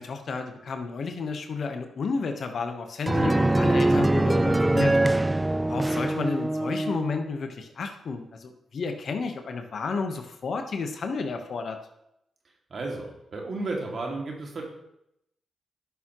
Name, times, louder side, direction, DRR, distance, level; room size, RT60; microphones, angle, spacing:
voice 1, 0.0-5.0 5.7-11.8, left 4 dB, 60° left, 6 dB, 1.1 m, -31 dB
sound 1, 3.1-7.2, right 1 dB, 15° right, 0.3 m, -23 dB
voice 2, 12.7-14.6, right 2 dB, 55° right, 0 dB, 2.3 m, -33 dB
10.5 x 6.7 x 3.0 m, 0.80 s
supercardioid pair, 50°, 0 cm